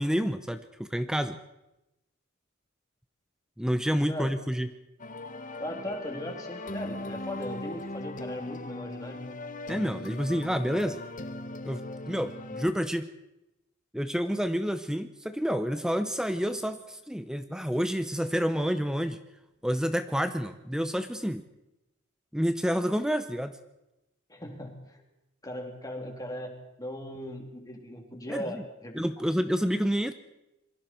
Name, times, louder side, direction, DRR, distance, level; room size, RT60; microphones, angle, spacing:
voice 1, 0.0-1.4 3.6-4.7 9.7-11.0 11.6-13.1 13.9-19.2 19.6-21.4 22.3-23.6 28.3-28.6 28.9-30.1, equal, 5° right, 10 dB, 0.7 m, -29 dB
sound 1, 5.0-12.7, left 2 dB, 40° left, 1.2 m, -39 dB
voice 2, 5.6-9.3 24.3-25.0 25.4-26.5 26.8-29.0, left 1 dB, 15° left, 2 dB, 3.2 m, -38 dB
26.5 x 23.0 x 4.5 m, 0.92 s
head